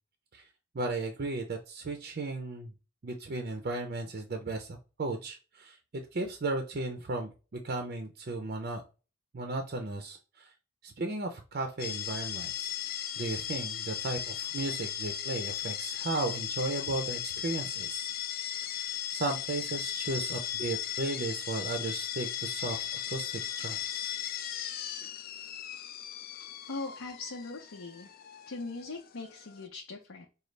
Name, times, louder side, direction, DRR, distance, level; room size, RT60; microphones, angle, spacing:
voice 1, 0.7-2.7 3.0-5.8 6.1-8.8 9.3-10.5 10.8-12.7 13.2-18.1 18.7-24.1 25.0-25.1, right 2 dB, 45° right, 5 dB, 0.5 m, -35 dB
sound 1, 11.8-29.7, left 10 dB, 45° left, 0.3 m, -37 dB
voice 2, 26.7-28.1 28.5-30.3, left 3 dB, 75° left, 0 dB, 0.7 m, -40 dB
5.0 x 2.3 x 3.2 m, 0.32 s
head